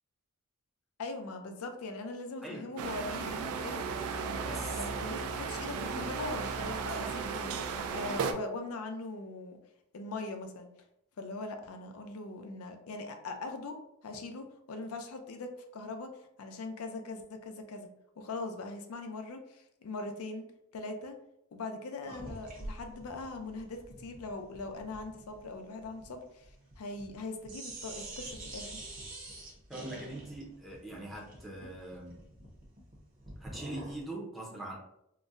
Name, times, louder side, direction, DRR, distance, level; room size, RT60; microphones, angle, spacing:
voice 1, 1.0-3.9 4.7-9.6 9.9-10.7 11.2-13.8 14.0-17.9 18.2-20.4 20.7-21.1 21.5-28.7, left 3 dB, 80° left, 6 dB, 0.4 m, -41 dB
sound 1, 2.8-8.3, right 5 dB, 80° right, 0.3 m, -35 dB
voice 2, 4.4-4.8 29.7-32.2 33.4-34.7, right 1 dB, ahead, -5 dB, 0.5 m, -42 dB
sound 2, 22.1-27.2 27.4-34.0, right 1 dB, 40° right, 0.7 m, -46 dB
3.9 x 2.0 x 2.5 m, 0.78 s
head